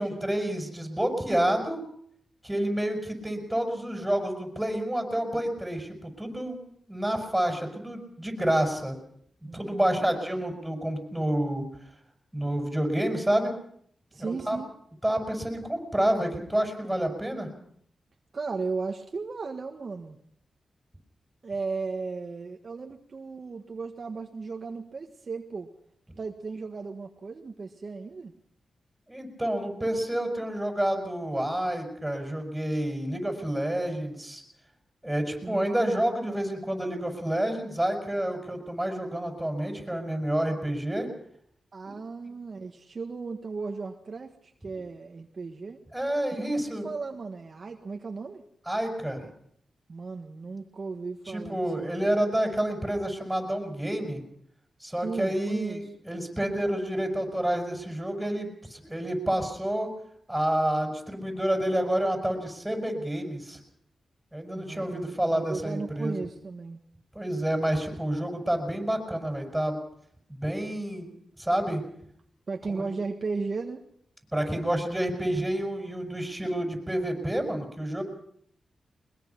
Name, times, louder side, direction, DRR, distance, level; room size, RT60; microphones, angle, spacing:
voice 1, 0.0-1.8 2.4-6.6 6.9-9.0 9.4-11.7 12.3-13.5 14.2-14.6 15.0-17.5 29.1-34.4 35.0-41.1 41.8-41.9 45.9-46.9 48.7-49.3 51.3-54.2 54.8-59.9 60.3-63.6 64.3-66.2 67.1-69.8 70.3-71.8 72.7-72.9 74.3-78.0, right 1 dB, 5° right, 4 dB, 6.2 m, -29 dB
voice 2, 9.4-9.9 14.1-14.7 18.3-20.2 21.4-25.7 26.2-28.3 35.4-35.7 41.7-45.8 46.4-48.4 49.9-52.0 55.0-55.8 64.5-66.8 72.5-73.8, right 4 dB, 50° right, 4 dB, 1.5 m, -36 dB
21.5 x 21.5 x 5.8 m, 0.66 s
cardioid pair, 75°, 0 cm